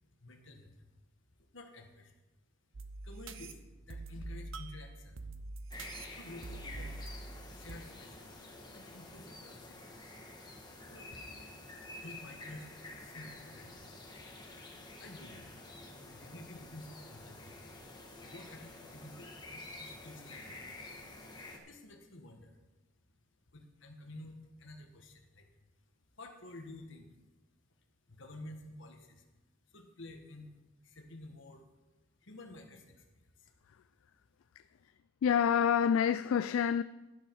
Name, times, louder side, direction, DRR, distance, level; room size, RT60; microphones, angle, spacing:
voice 1, 0.2-0.8 1.5-2.1 3.0-5.3 6.1-7.1 7.5-9.9 10.9-11.2 11.8-13.8 15.0-15.5 16.1-17.5 18.2-20.7 21.5-22.6 23.5-25.6 26.2-27.2 28.1-29.3 29.7-30.5 30.8-31.7 32.2-33.5 33.8-33.9, left 1 dB, 65° left, 1.6 m, -51 dB
sound 1, 2.7-7.8, right 2 dB, 70° right, 0.7 m, -45 dB
sound 2, 5.7-21.6, left 2 dB, 20° left, 1.6 m, -49 dB
voice 2, 35.2-36.8, left 8 dB, 80° left, 0.3 m, -27 dB
11.5 x 11.0 x 4.7 m
head